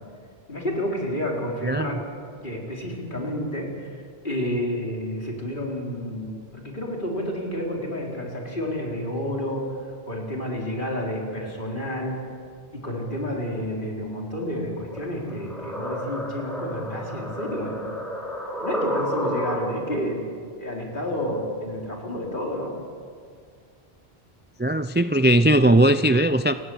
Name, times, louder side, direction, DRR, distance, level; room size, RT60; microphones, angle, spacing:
voice 1, 0.5-2.1 2.4-12.3 12.7-18.0 18.6-20.2 20.6-22.8, equal, 55° left, -1 dB, 4.5 m, -30 dB
sound 1, 14.9-20.0, equal, ahead, 4.3 m, -31 dB
voice 2, 24.6-26.5, right 1 dB, 15° right, 11 dB, 0.4 m, -18 dB
29.5 x 17.5 x 8.0 m, 2.1 s
omnidirectional pair, 1.0 m